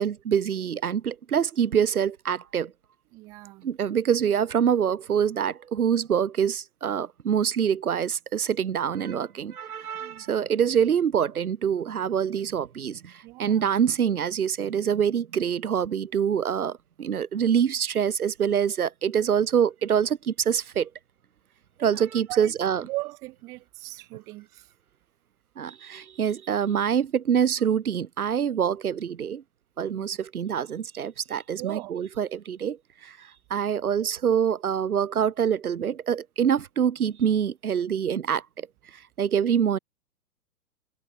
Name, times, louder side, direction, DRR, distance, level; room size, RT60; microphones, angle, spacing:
voice 1, 0.0-2.7 3.6-20.9 21.8-22.8 25.6-29.4 29.8-32.8 33.0-33.2 33.5-38.4 39.2-39.8, right 8 dB, 70° right, 1.0 m, -25 dB
voice 2, 3.1-3.7 10.0-10.3 13.2-13.7 21.8-22.5 22.8-24.7 29.9-30.1 31.6-31.9, right 22 dB, 10° right, 0.5 m, -38 dB
figure-of-eight pair, 110°, 45 cm